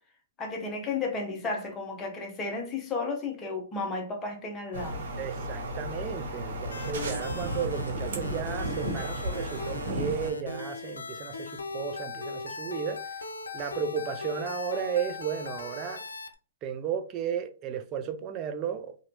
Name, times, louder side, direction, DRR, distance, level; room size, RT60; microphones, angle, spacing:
voice 1, 0.4-5.0, left 3 dB, 20° left, 0.8 m, -33 dB
sound 1, 4.7-10.3, right 1 dB, 70° right, 1.1 m, -34 dB
voice 2, 5.2-13.0 13.5-16.0 16.6-19.0, right 7 dB, 35° right, 0.5 m, -34 dB
sound 2, 6.6-16.3, left 3 dB, 90° left, 0.5 m, -39 dB
2.9 x 2.6 x 2.8 m
hypercardioid pair, 120°, 0 cm